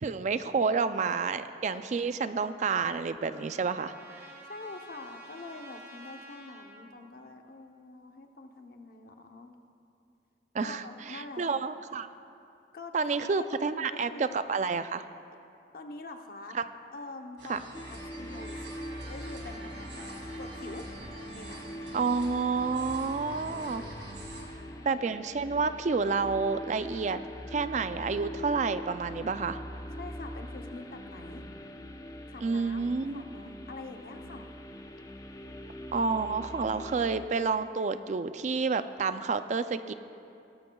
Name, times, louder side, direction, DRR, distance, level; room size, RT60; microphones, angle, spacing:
voice 1, 0.0-4.3 10.5-12.1 12.9-15.0 16.5-16.6 17.5-17.6 21.9-23.8 24.8-27.2 27.5-29.6 32.4-33.2 35.9-39.9, right 4 dB, 40° right, 11 dB, 0.4 m, -29 dB
Trumpet, 2.4-6.9, right 1 dB, 15° right, 1.6 m, -51 dB
voice 2, 4.4-9.6 10.6-11.6 12.7-14.2 15.7-16.6 16.9-20.9 21.3-21.7 24.4-25.0 29.9-31.5 32.3-34.5, left 3 dB, 55° left, 5 dB, 0.8 m, -45 dB
sound 1, 17.4-24.4, right 2 dB, 75° right, 2.3 m, -45 dB
sound 2, 17.7-37.3, equal, 20° left, 0.5 m, -43 dB
18.5 x 13.0 x 2.3 m, 2.6 s
head